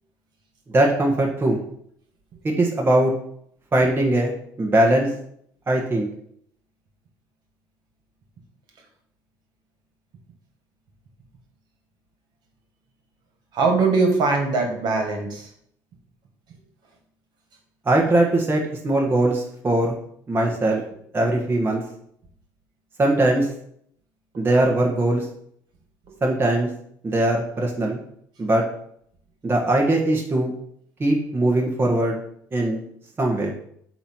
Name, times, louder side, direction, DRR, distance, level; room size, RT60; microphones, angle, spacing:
voice 1, 0.7-1.6 2.4-3.1 3.7-5.1 5.7-6.1 17.8-19.9 20.3-20.8 21.1-21.8 23.0-23.5 24.4-25.2 26.2-26.7 27.0-28.0 28.4-28.6 29.4-30.5 31.0-32.2 32.5-32.8 33.2-33.5, right 1 dB, 30° right, 0 dB, 1.5 m, -20 dB
voice 2, 13.5-15.5 24.3-24.4, right 3 dB, 60° right, 3 dB, 1.9 m, -21 dB
8.2 x 3.1 x 5.6 m, 0.68 s
supercardioid pair, 80°, 8 cm